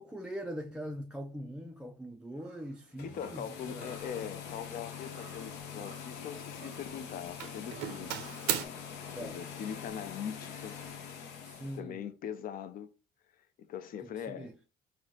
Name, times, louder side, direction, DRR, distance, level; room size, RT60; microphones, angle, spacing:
voice 1, 0.0-3.9 9.1-9.4 11.4-12.0 14.0-14.6, equal, 5° right, 0.3 m, -42 dB
Doorbell, 2.4-2.6 3.2-3.5 3.8-4.2 5.2-6.2 6.5-7.0 7.4-8.7, right 9 dB, 85° right, 0.5 m, -39 dB
sound 1, 2.9-11.8, left 7 dB, 85° left, 0.8 m, -44 dB
voice 2, 3.0-8.3 9.2-10.8 11.7-12.9 13.6-14.5, left 8 dB, 55° left, 0.5 m, -41 dB
4.5 x 2.1 x 3.9 m
cardioid pair, 110°, 17 cm